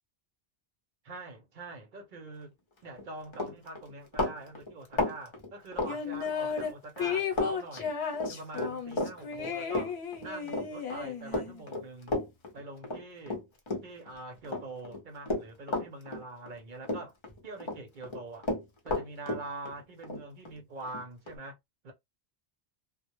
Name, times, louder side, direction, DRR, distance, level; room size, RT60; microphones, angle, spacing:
voice 1, 1.0-2.5 2.8-7.9 8.3-12.2 12.5-13.4 13.8-17.1 17.4-18.5 18.8-21.6 21.8-21.9, right 2 dB, 55° right, 0.8 m, -44 dB
Run, 2.9-3.0 3.3-6.7 7.0-7.5 7.8-14.1 14.4-16.6 16.8-17.8 18.0-21.4, left 2 dB, 35° left, 0.6 m, -33 dB
sound 1, 5.9-6.7 7.0-11.6, left 6 dB, 90° left, 1.0 m, -34 dB
2.1 x 2.0 x 2.9 m
omnidirectional pair, 1.0 m